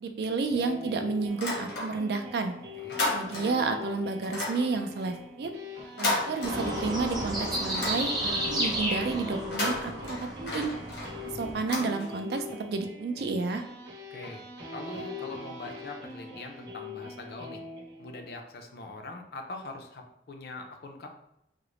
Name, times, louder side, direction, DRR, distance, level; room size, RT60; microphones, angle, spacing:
voice 1, 0.0-2.5 3.1-5.5 6.0-10.7 11.3-13.6, right 4 dB, 65° right, 6 dB, 0.3 m, -31 dB
sound 1, 0.5-18.3, left 3 dB, 85° right, 0.8 m, -43 dB
sound 2, 1.3-2.3 2.6-3.7 4.2-7.1 7.4-8.6 9.3-12.5, left 2 dB, 85° left, 1.0 m, -34 dB
sound 3, 6.4-11.6, right 1 dB, 25° right, 0.7 m, -33 dB
voice 2, 14.1-14.4 14.7-17.6 18.0-21.1, left 2 dB, 60° left, 4 dB, 0.4 m, -42 dB
3.7 x 2.0 x 3.0 m, 0.85 s
head